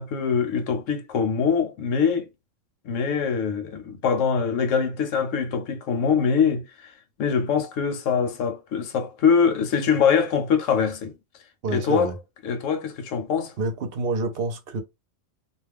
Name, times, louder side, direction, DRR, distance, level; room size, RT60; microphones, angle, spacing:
voice 1, 0.0-2.3 2.8-6.9 7.2-11.1 11.7-12.1 12.4-13.5, left 6 dB, 75° left, 1.0 m, -23 dB
voice 2, 11.6-12.2 13.6-14.8, right 3 dB, 55° right, 0.8 m, -27 dB
2.4 x 2.2 x 3.3 m
omnidirectional pair, 1.3 m